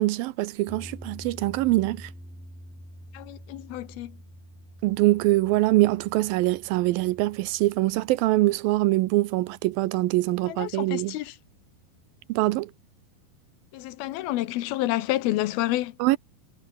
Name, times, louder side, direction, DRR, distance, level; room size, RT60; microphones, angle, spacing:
voice 1, 0.0-2.1 4.8-11.2 12.3-12.7 16.0-16.2, right 18 dB, 80° right, 2.3 m, -23 dB
sound 1, 0.7-10.9, equal, ahead, 0.7 m, -47 dB
voice 2, 3.1-4.1 10.5-11.3 13.7-15.9, left 16 dB, 85° left, 2.9 m, -29 dB
omnidirectional pair, 4.4 m